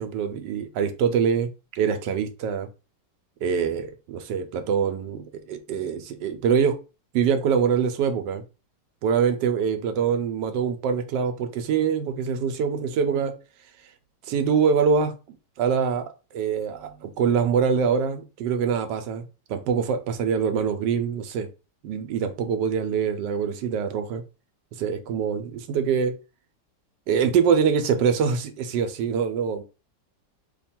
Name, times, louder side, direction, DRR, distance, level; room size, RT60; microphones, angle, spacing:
voice 1, 0.0-1.5 1.8-2.7 3.4-6.7 7.1-8.4 9.0-13.3 14.3-15.1 15.6-16.0 16.3-19.2 19.5-21.5 21.8-24.2 24.8-26.1 27.1-29.6, right 6 dB, 85° right, 1.2 m, -24 dB
3.1 x 2.2 x 4.3 m
omnidirectional pair, 1.9 m